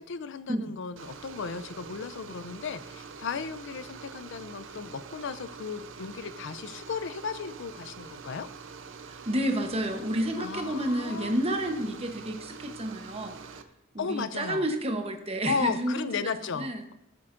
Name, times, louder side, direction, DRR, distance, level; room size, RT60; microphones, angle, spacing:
voice 1, 0.0-8.5 10.4-11.4 14.0-14.6 15.5-16.9, left 5 dB, 65° left, 14 dB, 0.5 m, -35 dB
sound 1, 1.0-13.6, right 5 dB, 65° right, 0.6 m, -45 dB
voice 2, 9.3-13.6 13.9-16.8, right 1 dB, 30° right, 5 dB, 1.0 m, -30 dB
14.5 x 7.4 x 2.6 m, 0.91 s
head